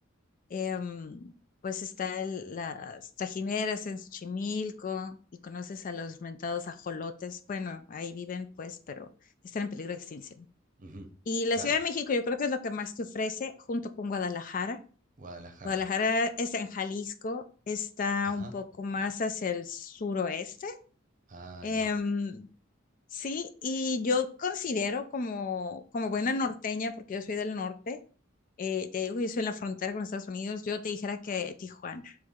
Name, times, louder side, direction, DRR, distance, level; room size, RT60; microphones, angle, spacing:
voice 1, 0.5-1.3 1.6-5.2 5.4-9.1 9.5-10.5 11.3-14.8 15.6-20.8 21.6-22.5 23.1-28.0 28.6-32.2, left 4 dB, 40° left, 9 dB, 0.4 m, -32 dB
voice 2, 10.8-11.1 11.5-11.7 15.2-15.8 18.2-18.6 21.3-21.9, right 2 dB, 40° right, 5 dB, 0.8 m, -45 dB
4.6 x 3.1 x 3.6 m, 0.39 s
head